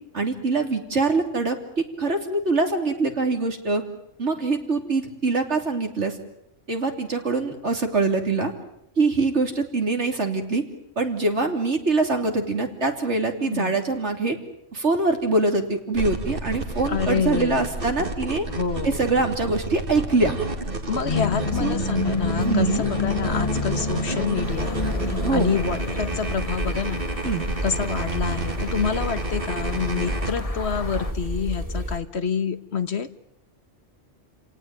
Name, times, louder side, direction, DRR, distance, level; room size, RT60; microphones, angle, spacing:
voice 1, 0.1-3.8 4.2-6.2 6.7-8.5 9.0-10.6 11.0-14.4 14.7-18.5 18.8-20.3 21.6-21.8 22.4-22.9 23.3-23.4 25.2-25.5 27.2-27.4, right 3 dB, 65° right, 5 dB, 3.4 m, -24 dB
voice 2, 13.4-13.7 16.9-17.7 18.5-19.1 20.9-24.8 25.3-27.0 27.6-33.1, left 6 dB, 60° left, 12 dB, 1.5 m, -27 dB
sound 1, 15.9-30.3, right 3 dB, 45° right, 2.5 m, -31 dB
sound 2, 21.0-31.1, left 4 dB, 30° left, 1.6 m, -30 dB
sound 3, 24.4-32.0, equal, 15° right, 2.9 m, -31 dB
29.0 x 18.0 x 9.2 m, 0.79 s
omnidirectional pair, 1.2 m